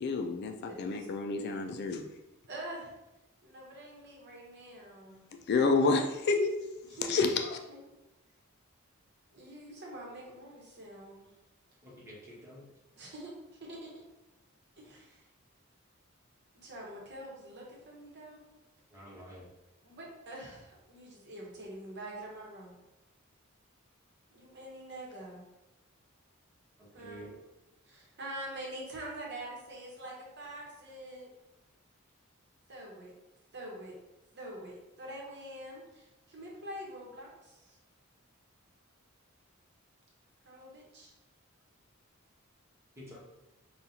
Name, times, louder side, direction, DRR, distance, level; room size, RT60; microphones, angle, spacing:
voice 1, 0.0-2.1 5.1-5.2 5.5-6.5 7.1-7.6, left 3 dB, 50° left, 5 dB, 0.3 m, -29 dB
voice 2, 2.5-2.9 3.4-5.2 6.8-7.2 7.7-7.8 9.3-11.3 13.0-14.0 14.8-15.2 16.6-18.4 19.8-22.7 24.3-25.4 26.9-27.4 27.8-31.3 32.7-33.2 33.5-33.9 34.3-37.8 40.4-41.1, right 1 dB, 55° right, -2 dB, 1.0 m, -45 dB
voice 3, 11.8-12.6 18.9-19.5 26.8-27.4 43.0-43.2, equal, 15° right, -6 dB, 1.1 m, -49 dB
5.2 x 2.4 x 2.8 m, 0.98 s
head